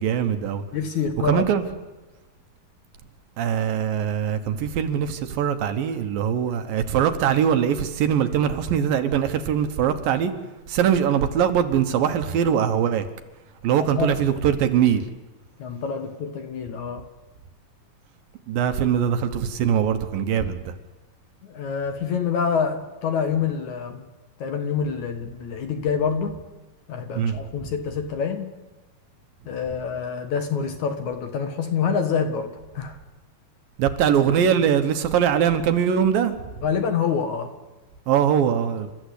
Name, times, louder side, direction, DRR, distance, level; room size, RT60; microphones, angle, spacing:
voice 1, 0.0-0.6 1.2-1.6 3.4-10.3 10.7-13.1 13.6-15.0 18.5-20.7 27.2-27.4 33.8-36.6 38.1-38.9, right 8 dB, 70° right, 9 dB, 2.8 m, -22 dB
voice 2, 0.7-1.4 13.8-14.2 15.6-17.1 21.4-24.1 24.4-26.4 26.9-28.6 29.5-33.0 36.6-37.5, left 6 dB, 60° left, 7 dB, 2.3 m, -26 dB
29.5 x 13.5 x 8.4 m, 1.2 s
omnidirectional pair, 4.5 m